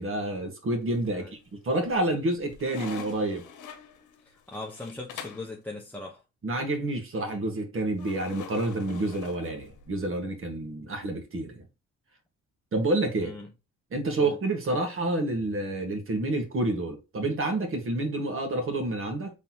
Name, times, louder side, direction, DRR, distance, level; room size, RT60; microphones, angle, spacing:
voice 1, 0.0-1.4 1.6-3.4 6.4-11.6 12.7-13.3 13.9-19.3, right 2 dB, 45° right, 1.5 m, -28 dB
sound 1, 0.9-1.4 1.9-5.5 8.0-10.0, left 7 dB, 80° left, 0.9 m, -44 dB
voice 2, 4.2-6.2 13.2-13.5 14.2-14.4, left 2 dB, 5° left, 0.9 m, -39 dB
4.0 x 3.5 x 2.9 m
cardioid pair, 90°, 30 cm